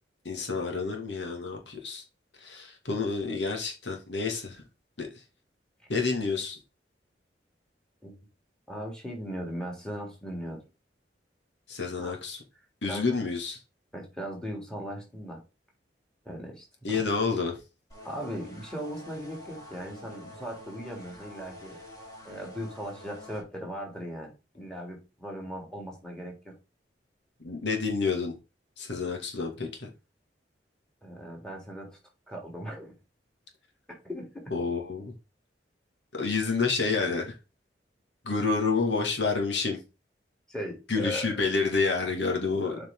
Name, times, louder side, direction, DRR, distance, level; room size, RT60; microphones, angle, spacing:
voice 1, 0.2-2.0 2.4-4.6 5.0-5.1 5.9-6.6 11.7-12.4 12.8-13.6 16.8-17.6 27.4-28.3 28.8-29.9 34.5-35.1 36.1-37.4 38.2-39.8 40.9-42.9, left 4 dB, 85° left, 2.5 m, -29 dB
voice 2, 8.7-10.6 12.0-12.2 12.8-13.1 13.9-15.4 16.2-17.0 18.0-21.8 22.2-26.5 31.0-32.0 32.3-32.9 33.9-34.5 40.5-41.4 42.6-42.9, equal, 5° left, 3.3 m, -38 dB
sound 1, 17.9-23.4, left 1 dB, 20° left, 4.4 m, -47 dB
8.0 x 5.2 x 3.9 m
head